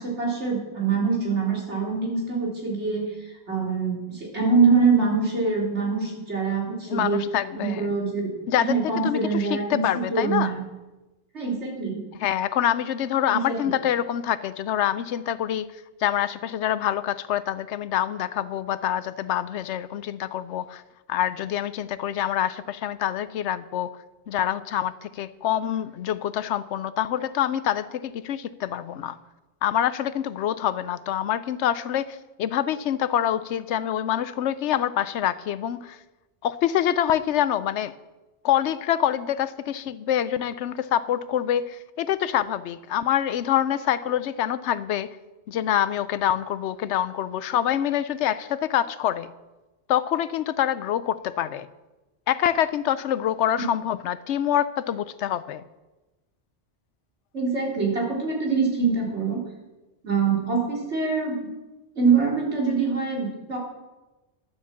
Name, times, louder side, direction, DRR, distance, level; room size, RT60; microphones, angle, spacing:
voice 1, 0.0-3.1 3.5-7.2 7.5-10.6 11.3-12.0 13.3-13.7 57.3-59.4 60.0-61.4 61.9-63.6, right 4 dB, 85° right, -3 dB, 3.4 m, -24 dB
voice 2, 6.9-7.9 8.5-8.8 9.0-10.5 12.2-15.7 16.0-20.8 21.1-23.9 24.3-29.2 29.6-36.0 36.4-37.9 38.4-45.1 45.5-49.3 49.9-51.7 52.3-55.6, left 10 dB, 90° left, 15 dB, 0.9 m, -26 dB
11.5 x 7.3 x 7.3 m, 1.1 s
omnidirectional pair, 1.1 m